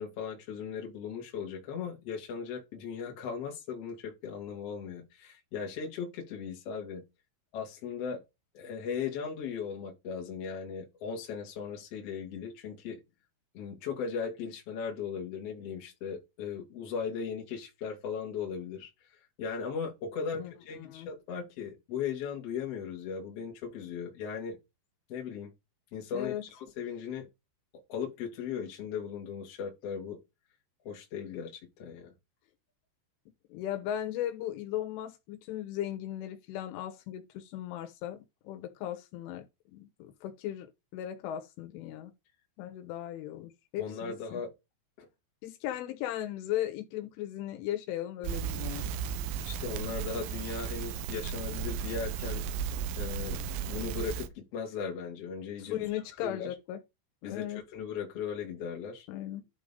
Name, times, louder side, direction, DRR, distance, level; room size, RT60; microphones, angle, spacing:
voice 1, 0.0-7.0 7.5-8.2 8.5-13.0 13.5-18.9 19.4-24.6 25.1-25.5 25.9-27.3 27.7-30.2 30.8-32.1 43.8-44.5 45.0-45.1 49.5-52.4 52.9-55.8 56.2-56.5 57.2-59.1, left 6 dB, 45° left, 2.2 m, -38 dB
voice 2, 20.3-21.1 26.1-26.4 33.5-39.4 39.7-40.7 40.9-42.1 42.6-44.4 45.4-48.9 55.6-56.8 57.2-57.6 59.1-59.5, left 12 dB, 85° left, 3.5 m, -37 dB
Crackle, 48.2-54.3, right 7 dB, 80° right, 2.6 m, -35 dB
11.5 x 3.8 x 5.4 m
omnidirectional pair, 5.6 m